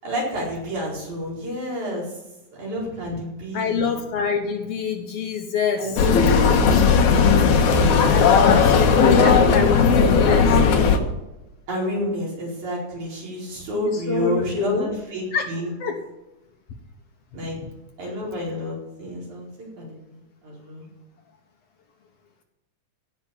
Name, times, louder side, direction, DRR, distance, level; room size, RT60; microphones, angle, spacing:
voice 1, 0.0-2.1 2.6-3.9 5.8-6.1 7.7-8.0 9.0-9.4 10.0-10.4 11.7-15.7 17.3-17.6 18.0-20.9, equal, 70° right, -5 dB, 6.2 m, -29 dB
voice 2, 3.5-6.0 8.1-10.5 13.8-14.9 15.3-15.5 15.8-16.0, left 6 dB, 60° left, 5 dB, 2.0 m, -25 dB
sound 1, 6.0-11.0, left 5 dB, 75° left, 2.6 m, -16 dB
16.5 x 6.1 x 8.5 m, 0.98 s
omnidirectional pair, 3.5 m